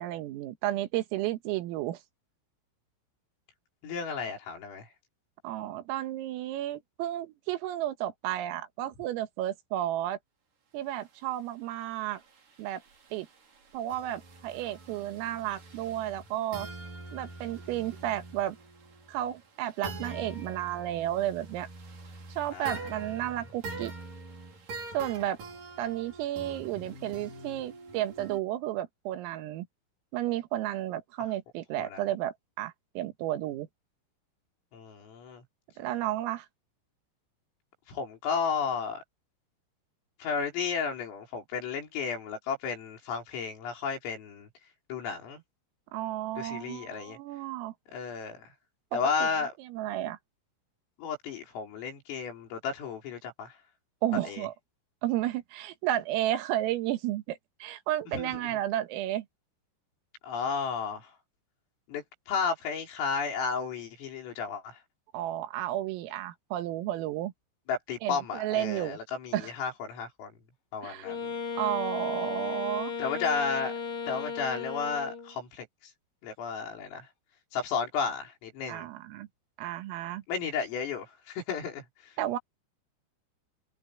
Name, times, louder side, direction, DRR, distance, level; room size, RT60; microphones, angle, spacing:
voice 1, 0.0-2.0 5.4-10.2 10.7-12.2 12.6-12.8 13.1-13.3 13.7-16.7 17.1-18.6 19.1-21.7 22.4-23.9 24.9-25.4 25.8-29.7 30.1-33.7 35.8-36.5 45.9-47.7 48.9-49.3 49.6-50.2 54.0-54.5 55.0-59.3 65.1-67.3 68.0-69.0 69.3-69.5 70.8-71.1 71.6-72.9 78.7-79.3 79.6-80.2 82.2-82.4, right 13 dB, 90° right, 4.1 m, -32 dB
voice 2, 3.8-4.9 22.5-22.8 31.8-32.0 34.7-35.4 37.9-39.0 40.2-44.5 44.9-45.4 46.4-47.2 47.9-48.5 48.9-49.5 51.0-53.5 54.2-54.5 58.1-58.3 60.2-61.1 61.9-64.8 67.7-70.3 70.7-71.3 73.0-73.7 74.1-75.7 76.2-77.1 77.5-78.9 80.3-82.1, left 5 dB, 80° left, 7.7 m, -33 dB
sound 1, 12.1-28.4, right 3 dB, 45° right, 5.4 m, -44 dB
Wind instrument woodwind instrument, 71.0-75.4, left 6 dB, 55° left, 5.8 m, -35 dB
omnidirectional pair, 5.9 m